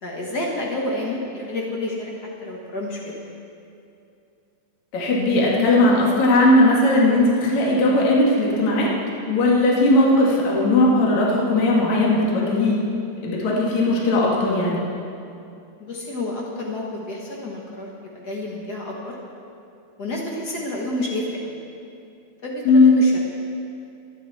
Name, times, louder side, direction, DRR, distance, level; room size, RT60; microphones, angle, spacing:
voice 1, 0.0-3.3 15.8-19.2 20.0-21.6 22.4-23.1, left 1 dB, 90° left, -2 dB, 0.8 m, -30 dB
voice 2, 4.9-8.9 9.3-12.8 13.2-14.8 22.6-23.0, left 2 dB, 55° left, -4 dB, 3.1 m, -18 dB
24.0 x 9.2 x 4.2 m, 2.6 s
omnidirectional pair, 4.1 m